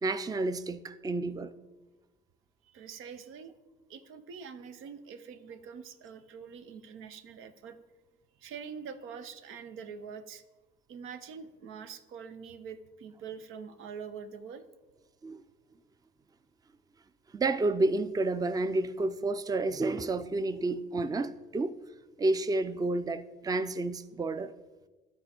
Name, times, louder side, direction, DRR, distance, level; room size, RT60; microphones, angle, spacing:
voice 1, 0.0-1.5 15.2-15.4 17.3-21.8 22.2-24.5, right 2 dB, 20° right, 0.4 m, -30 dB
voice 2, 2.6-3.5 3.9-7.8 8.4-10.4 10.9-14.6, right 6 dB, 90° right, 0.7 m, -44 dB
12.5 x 4.3 x 4.4 m
cardioid pair, 90°, 20 cm